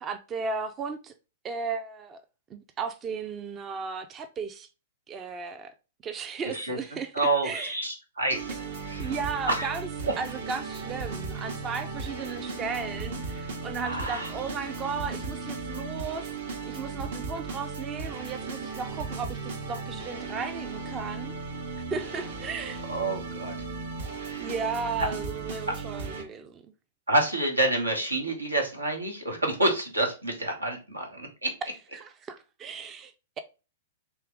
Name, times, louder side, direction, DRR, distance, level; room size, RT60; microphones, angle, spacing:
voice 1, 0.0-1.1 1.4-2.2 2.5-4.7 5.1-5.7 6.0-7.8 9.0-9.9 10.2-21.3 21.9-22.8 24.4-26.6 31.9-33.4, right 5 dB, 25° right, 0.4 m, -35 dB
voice 2, 7.1-9.1 9.5-9.7 13.8-14.3 22.9-23.5 24.2-24.5 27.1-31.5, right 2 dB, 85° right, 1.1 m, -28 dB
sound 1, 8.3-26.2, right 4 dB, 60° right, 0.9 m, -36 dB
3.3 x 3.0 x 3.5 m
figure-of-eight pair, 105°, 0 cm